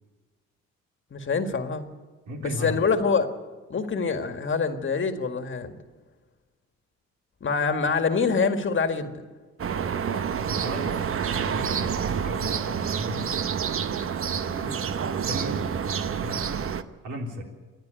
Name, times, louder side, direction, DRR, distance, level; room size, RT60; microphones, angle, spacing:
voice 1, 1.1-1.8 2.4-3.3 3.7-5.8 7.4-9.1 14.6-14.8, left 5 dB, 40° left, 7 dB, 1.9 m, -25 dB
voice 2, 2.3-2.8 4.0-4.2 7.9-8.0 10.1-13.2 14.2-16.6 17.0-17.4, equal, 80° right, 1 dB, 3.8 m, -37 dB
sound 1, 9.6-16.8, right 7 dB, 45° right, 0.9 m, -28 dB
27.5 x 10.5 x 9.1 m, 1.3 s
cardioid pair, 90°, 30 cm